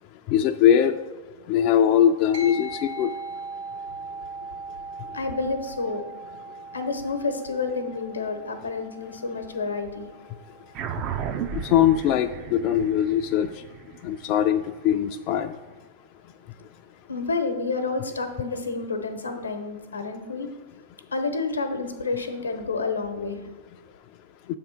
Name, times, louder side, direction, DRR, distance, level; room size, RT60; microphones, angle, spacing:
voice 1, 0.3-0.9 1.5-3.1 11.5-13.5 14.0-15.5, left 10 dB, 45° left, 7 dB, 0.3 m, -21 dB
sound 1, 2.3-12.0, right 3 dB, 70° right, 1.8 m, -40 dB
voice 2, 5.1-6.0 6.7-10.1 17.1-20.5 21.1-23.4, left 4 dB, 90° left, 7 dB, 0.8 m, -29 dB
sound 2, 10.7-15.5, right 8 dB, 40° right, 0.4 m, -35 dB
7.2 x 3.5 x 5.0 m, 1.2 s
hypercardioid pair, 110°, 0 cm